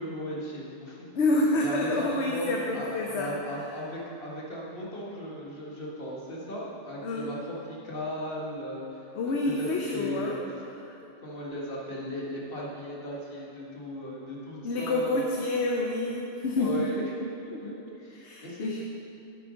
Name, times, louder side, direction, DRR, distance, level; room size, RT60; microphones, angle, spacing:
voice 1, 0.0-1.1 1.6-2.5 2.7-10.4 11.2-15.3 16.6-17.7 18.0-18.8, equal, 45° left, -5 dB, 1.8 m, -37 dB
voice 2, 1.1-3.3 7.0-7.3 9.1-10.4 14.6-16.8 17.5-17.6 18.2-18.8, left 2 dB, 60° left, -1 dB, 1.0 m, -28 dB
8.7 x 8.0 x 5.1 m, 2.8 s
omnidirectional pair, 1.4 m